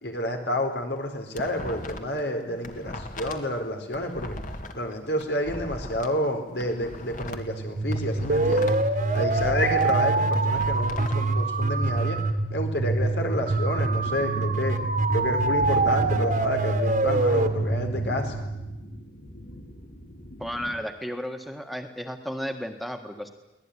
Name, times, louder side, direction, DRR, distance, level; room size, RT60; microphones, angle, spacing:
voice 1, 0.0-4.4 4.7-8.8 9.1-12.2 12.5-14.8 15.1-18.3, left 1 dB, 80° left, 4 dB, 4.3 m, -29 dB
sound 1, 1.0-2.2 2.5-6.1 6.5-8.8 9.1-11.2, left 1 dB, 50° left, 2.1 m, -38 dB
sound 2, 7.3-19.1, right 2 dB, 50° right, 1.8 m, -25 dB
sound 3, 13.9-20.7, equal, 65° left, 3.9 m, -41 dB
voice 2, 20.4-23.3, equal, ahead, 5 dB, 1.7 m, -33 dB
24.0 x 18.0 x 10.0 m, 0.97 s
head